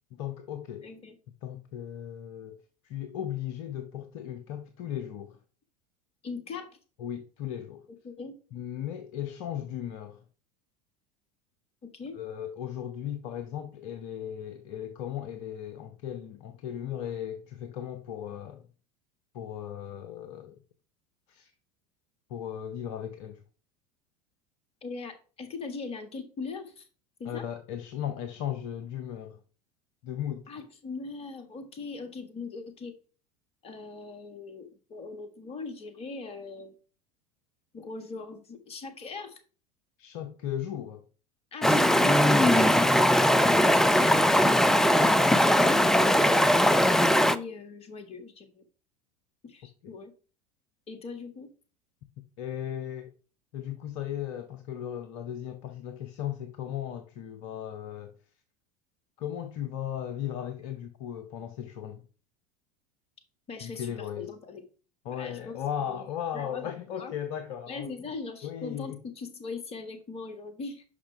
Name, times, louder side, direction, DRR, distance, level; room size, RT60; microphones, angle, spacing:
voice 1, 0.1-0.9 1.4-2.6 2.8-5.4 7.0-7.9 8.5-10.2 12.1-18.7 19.3-20.6 21.3-21.5 22.3-23.4 27.2-29.4 30.0-30.5 40.0-41.1 49.8-49.9 52.4-53.1 53.5-58.2 59.2-62.1 63.6-64.3 65.0-68.1 68.4-69.0, left 10 dB, 50° left, 0.8 m, -36 dB
voice 2, 0.8-1.1 6.2-6.7 8.0-8.3 11.8-12.2 24.8-26.9 27.2-27.5 30.5-32.9 33.6-36.7 37.7-39.4 46.9-48.6 49.4-50.1 50.9-51.5 63.5-64.6 65.1-66.0 66.3-67.1 67.7-70.8, left 4 dB, 30° left, 1.6 m, -41 dB
Stream, 41.6-47.4, equal, ahead, 0.4 m, -20 dB
9.7 x 5.6 x 3.3 m
figure-of-eight pair, 80°, 20 cm